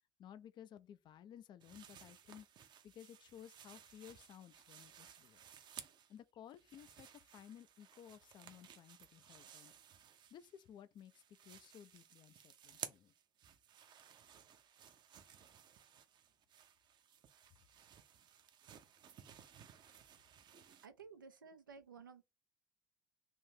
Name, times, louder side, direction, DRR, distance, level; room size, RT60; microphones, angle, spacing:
voice 1, 0.2-2.5 2.8-5.4 6.1-9.7 10.3-13.1, left 9 dB, 45° left, 0.5 m, -57 dB
sound 1, 1.6-6.2 6.5-10.7 11.0-20.9, right 8 dB, 45° right, 0.7 m, -57 dB
voice 2, 20.8-22.2, right 5 dB, 85° right, 0.6 m, -55 dB
3.6 x 2.6 x 4.4 m
hypercardioid pair, 65°, 11 cm